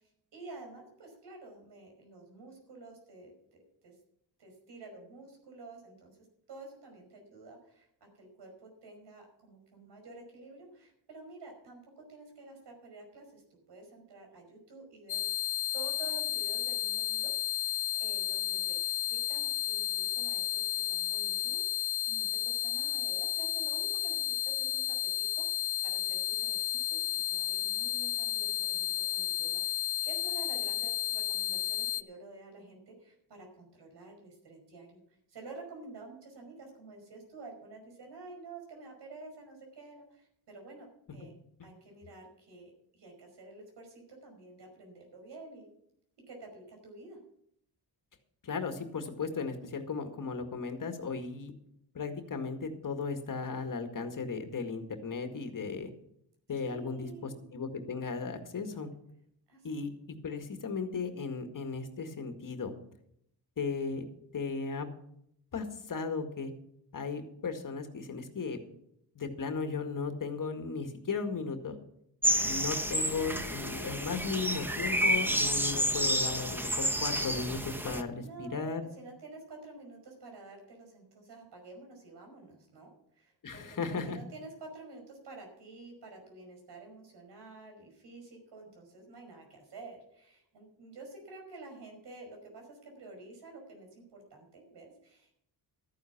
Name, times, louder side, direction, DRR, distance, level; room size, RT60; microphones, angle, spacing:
voice 1, 0.0-3.9 4.4-6.1 6.5-13.4 13.7-15.2 15.7-35.0 35.3-41.3 41.6-45.7 46.3-47.2 56.7-57.4 59.5-59.7 78.2-78.6 78.9-83.6 83.9-95.4, right 3 dB, 85° right, 2 dB, 5.4 m, -50 dB
sound 1, 15.1-32.0, left 12 dB, 70° left, 0.7 m, -32 dB
voice 2, 48.4-51.5 51.9-55.9 56.5-58.9 59.6-62.7 63.6-64.1 64.3-64.9 65.5-66.5 66.9-68.6 69.2-71.8 72.4-78.8 83.4-84.2, left 4 dB, 50° left, 6 dB, 2.0 m, -36 dB
sound 2, 72.2-78.0, equal, 5° right, 0.9 m, -30 dB
13.5 x 9.8 x 5.9 m, 0.73 s
cardioid pair, 100°, 41 cm